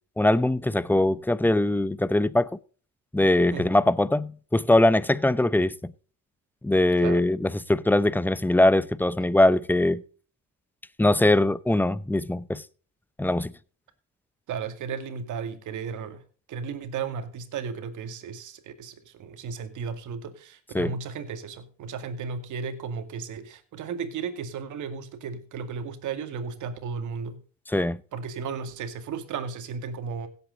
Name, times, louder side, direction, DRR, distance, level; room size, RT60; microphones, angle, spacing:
voice 1, 0.2-2.5 3.1-5.9 6.6-10.0 11.0-12.6 13.2-13.5 20.7-20.9 27.7-28.0, left 1 dB, 5° left, 0.6 m, -22 dB
voice 2, 14.5-16.2 16.5-27.4 28.1-30.3, right 6 dB, 80° right, 2.1 m, -34 dB
16.5 x 8.0 x 3.9 m
cardioid pair, 90°, 30 cm